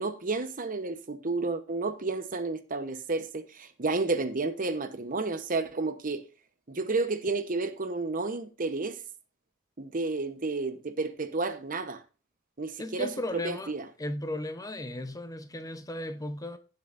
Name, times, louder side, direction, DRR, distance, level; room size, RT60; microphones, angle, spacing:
voice 1, 0.0-6.2 6.7-9.0 9.8-12.0 12.6-13.1 13.4-13.8, right 3 dB, 45° right, 0.9 m, -31 dB
voice 2, 12.8-13.7 14.0-16.6, left 1 dB, 20° left, 0.9 m, -35 dB
16.5 x 7.2 x 2.6 m
head